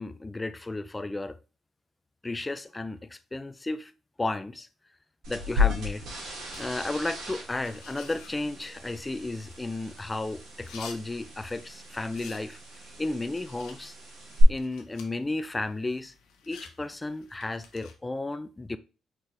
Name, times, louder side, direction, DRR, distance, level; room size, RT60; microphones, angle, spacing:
voice 1, 0.0-1.4 2.2-3.9 4.2-4.7 5.3-6.0 6.6-12.6 13.0-14.0 14.5-16.1 16.5-18.8, left 2 dB, 15° left, 0.4 m, -33 dB
sound 1, 5.2-14.4, left 3 dB, 80° right, 2.1 m, -35 dB
sound 2, 6.4-17.9, left 6 dB, 90° left, 0.8 m, -52 dB
4.4 x 3.8 x 3.2 m
cardioid pair, 90°, 0 cm